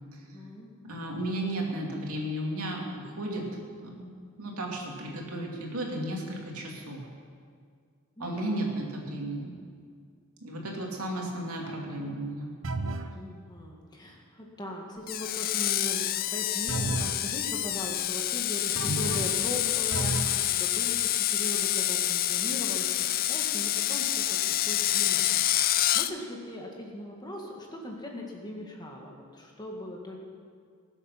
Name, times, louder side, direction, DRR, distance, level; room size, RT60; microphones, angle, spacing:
voice 1, 0.2-0.7 8.2-8.6 13.1-22.9 23.3-30.2, left 1 dB, 20° left, 0 dB, 1.7 m, -40 dB
voice 2, 0.8-7.0 8.2-9.5 10.4-12.5, right 1 dB, 85° right, -1 dB, 2.7 m, -34 dB
sound 1, 12.6-13.2 16.7-17.2 18.7-19.4 19.9-20.4, right 3 dB, 65° right, 0.7 m, -32 dB
Screech, 15.1-26.1, left 13 dB, 40° left, 0.4 m, -27 dB
20.0 x 8.0 x 5.8 m, 2.1 s
head